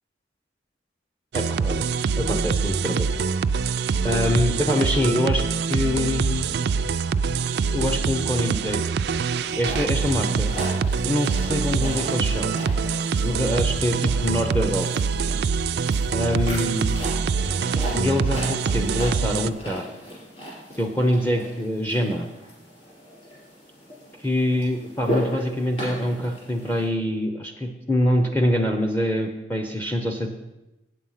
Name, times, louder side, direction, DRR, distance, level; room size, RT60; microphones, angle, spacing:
voice 1, 1.3-1.9 2.2-3.1 4.0-6.5 7.7-8.8 9.6-10.6 11.0-12.6 13.2-14.9 16.1-17.0 17.9-19.9 20.8-22.3 24.2-30.3, left 1 dB, 10° left, 3 dB, 0.6 m, -25 dB
sound 1, 1.3-19.5, right 5 dB, 60° right, 0.3 m, -24 dB
sound 2, 9.4-26.9, equal, 35° left, 4.1 m, -37 dB
8.3 x 7.5 x 5.6 m, 0.98 s
head